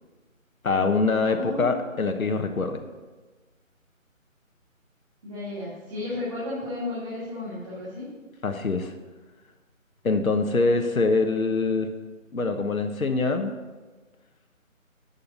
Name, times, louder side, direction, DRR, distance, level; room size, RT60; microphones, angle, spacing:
voice 1, 0.6-2.8 8.4-8.9 10.0-11.9 12.3-13.5, left 3 dB, 80° left, 5 dB, 1.2 m, -24 dB
voice 2, 1.2-1.7 5.2-8.1, left 2 dB, 25° right, -9 dB, 2.5 m, -33 dB
11.5 x 5.7 x 6.9 m, 1.3 s
figure-of-eight pair, 170°, 41 cm